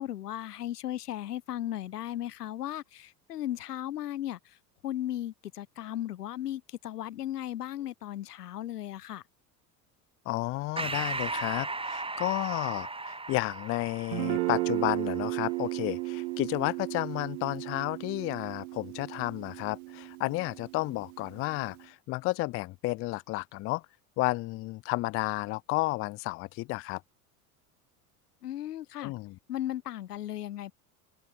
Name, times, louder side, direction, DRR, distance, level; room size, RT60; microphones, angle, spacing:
voice 1, 0.0-4.4 4.8-9.2 28.4-29.1 29.5-30.7, left 12 dB, 80° left, 1.3 m, -36 dB
voice 2, 10.3-23.8 24.2-27.0 29.0-29.4, left 21 dB, 30° left, 0.4 m, -32 dB
Breathing, 10.8-15.6, right 3 dB, 10° right, 2.7 m, -37 dB
Guitar, 14.1-21.8, right 23 dB, 65° right, 2.5 m, -35 dB
open air
hypercardioid pair, 75°, 46 cm